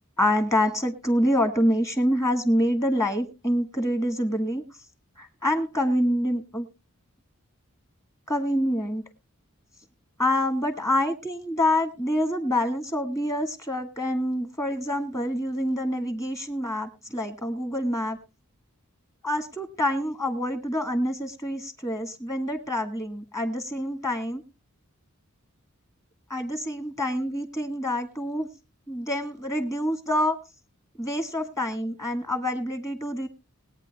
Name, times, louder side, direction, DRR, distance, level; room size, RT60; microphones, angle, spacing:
voice 1, 0.2-4.6 5.2-6.7 8.3-9.0 10.2-18.2 19.2-24.4 26.3-28.5 28.9-30.4 31.0-33.3, left 1 dB, 15° left, 7 dB, 1.5 m, -26 dB
20.5 x 9.1 x 2.2 m, 0.29 s
head